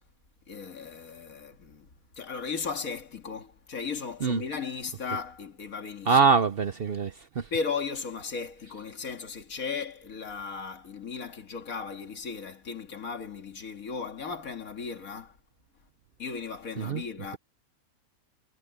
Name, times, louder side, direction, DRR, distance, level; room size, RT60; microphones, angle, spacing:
voice 1, 0.5-1.9 2.2-6.3 7.5-15.4 16.2-17.4, left 5 dB, 70° left, 2.3 m, -36 dB
voice 2, 6.1-7.5 16.8-17.0, right 5 dB, 50° right, 0.7 m, -24 dB
omnidirectional pair, 1.5 m